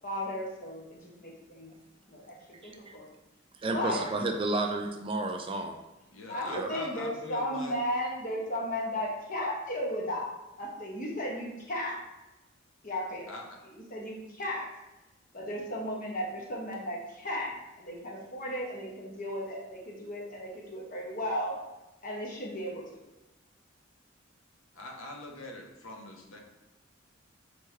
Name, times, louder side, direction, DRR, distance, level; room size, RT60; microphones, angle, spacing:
voice 1, 0.0-1.7 2.1-3.1 3.7-4.0 6.2-12.0 12.8-13.3 13.7-14.7 15.3-21.5 22.0-22.8, equal, 45° left, -2 dB, 1.0 m, -35 dB
voice 2, 2.6-3.0 3.6-5.8 6.5-6.7, right 2 dB, 25° right, 4 dB, 0.3 m, -32 dB
voice 3, 6.1-7.8 13.3-13.4 24.7-26.4, left 2 dB, 80° left, 1 dB, 0.8 m, -43 dB
4.4 x 3.4 x 3.2 m, 1.0 s
head